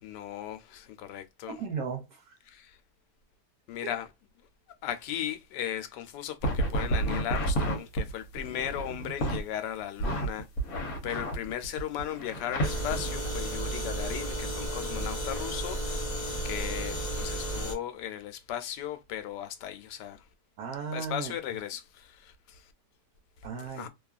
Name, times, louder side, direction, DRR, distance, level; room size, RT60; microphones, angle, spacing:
voice 1, 0.0-1.6 2.5-2.8 3.7-4.1 4.8-10.5 11.0-16.1 16.4-20.2 20.9-22.7 23.7-23.9, left 11 dB, 85° left, 1.2 m, -37 dB
voice 2, 1.5-2.4 3.8-3.9 20.6-21.3 23.4-23.9, right 6 dB, 75° right, 1.1 m, -36 dB
sound 1, 6.4-9.4 10.0-13.3, right 1 dB, 60° left, 1.2 m, -31 dB
sound 2, 12.6-17.7, right 1 dB, 40° left, 0.4 m, -33 dB
2.9 x 2.4 x 2.3 m
omnidirectional pair, 1.8 m